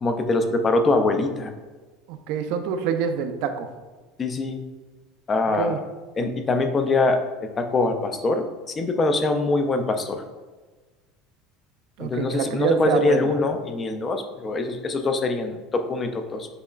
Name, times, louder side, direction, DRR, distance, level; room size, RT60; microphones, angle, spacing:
voice 1, 0.0-1.5 4.2-4.6 5.3-5.8 6.2-7.2 7.6-10.2 12.0-16.5, left 2 dB, 20° left, 7 dB, 0.3 m, -23 dB
voice 2, 2.1-3.7 5.6-5.8 12.0-13.3, right 7 dB, 60° right, 8 dB, 0.4 m, -26 dB
6.5 x 2.9 x 2.4 m, 1.3 s
cardioid pair, 160°, 0 cm